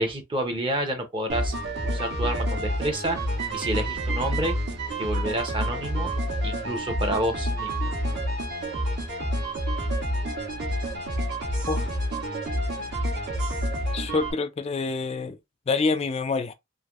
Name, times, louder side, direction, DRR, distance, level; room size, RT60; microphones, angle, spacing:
voice 1, 0.0-1.5 1.9-3.2 3.5-4.5 5.0-6.1 6.4-7.7, right 1 dB, 25° right, 0.7 m, -29 dB
sound 1, 1.3-14.3, right 1 dB, 55° right, 1.2 m, -28 dB
voice 2, 13.9-15.4 15.7-16.5, left 4 dB, 30° left, 0.3 m, -26 dB
3.3 x 2.5 x 2.4 m
head